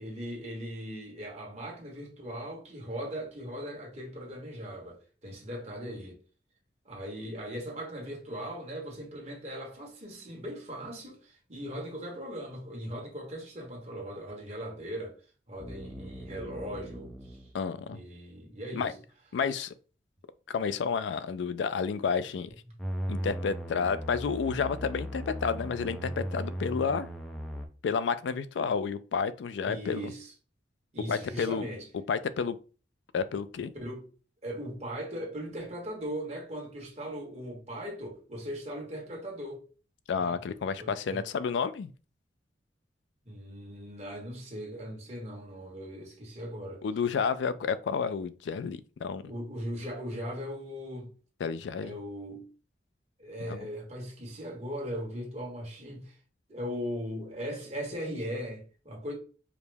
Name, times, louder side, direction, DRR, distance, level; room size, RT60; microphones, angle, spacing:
voice 1, 0.0-6.2 6.8-15.1 15.5-17.4 17.9-18.9 29.6-30.3 30.9-31.9 33.7-34.0 34.4-39.6 40.2-40.4 40.8-41.2 43.2-46.8 49.2-51.1 51.8-52.5 53.2-56.2 56.5-59.1, equal, 40° right, 1.4 m, -39 dB
sound 1, 15.6-17.5 22.8-27.7, equal, 5° left, 0.5 m, -38 dB
voice 2, 17.5-18.0 18.7-18.9 19.3-19.7 20.5-22.6 23.1-27.1 27.8-30.1 31.1-31.7 32.1-32.6 33.1-33.7 40.1-41.9 46.8-49.3 51.4-51.9 53.5-53.7, left 6 dB, 85° left, 0.3 m, -30 dB
4.8 x 2.1 x 3.3 m
head